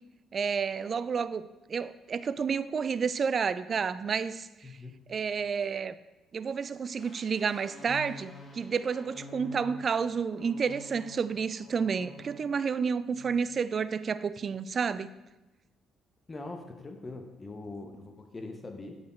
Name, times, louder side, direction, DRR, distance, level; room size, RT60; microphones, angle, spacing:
voice 1, 0.3-4.5 5.1-5.9 6.3-15.1, right 6 dB, 50° right, 0.3 m, -30 dB
voice 2, 4.6-5.0 16.3-19.0, left 2 dB, 30° left, 0.8 m, -42 dB
sound 1, 7.0-12.7 13.0-13.3, left 1 dB, 50° left, 1.2 m, -49 dB
8.4 x 4.3 x 4.4 m
hypercardioid pair, 55°, 0 cm